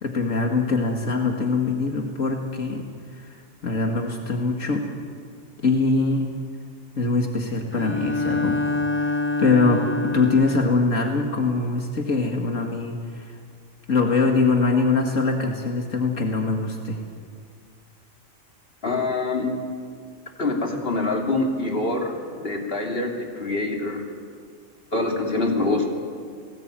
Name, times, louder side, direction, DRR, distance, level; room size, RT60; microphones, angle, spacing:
voice 1, 0.0-2.8 3.2-3.3 3.6-4.9 5.6-6.3 7.0-8.6 8.9-13.3 13.9-17.0, left 3 dB, 80° left, 2 dB, 2.5 m, -23 dB
Bowed string instrument, 7.7-10.8, left 3 dB, 10° left, 0.7 m, -26 dB
voice 2, 18.8-19.6 20.4-22.1 22.4-24.0 24.9-25.9, left 2 dB, 45° left, 1 dB, 3.5 m, -25 dB
30.0 x 19.0 x 9.1 m, 2.1 s
omnidirectional pair, 1.3 m